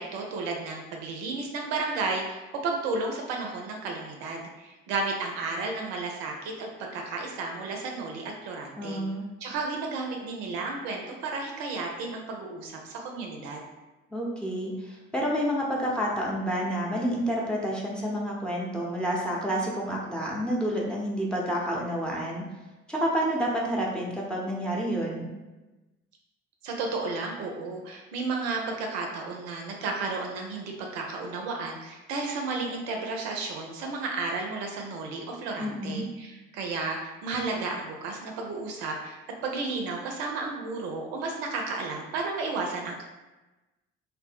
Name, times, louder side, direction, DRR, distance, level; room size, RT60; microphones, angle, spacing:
voice 1, 0.0-9.0 9.4-13.7 26.6-43.0, right 3 dB, 65° right, 1 dB, 0.5 m, -33 dB
voice 2, 8.8-9.3 14.1-22.4 22.9-25.3 35.6-36.0, equal, 5° left, -3 dB, 0.7 m, -29 dB
2.7 x 2.0 x 3.4 m, 1.1 s
figure-of-eight pair, 50°, 34 cm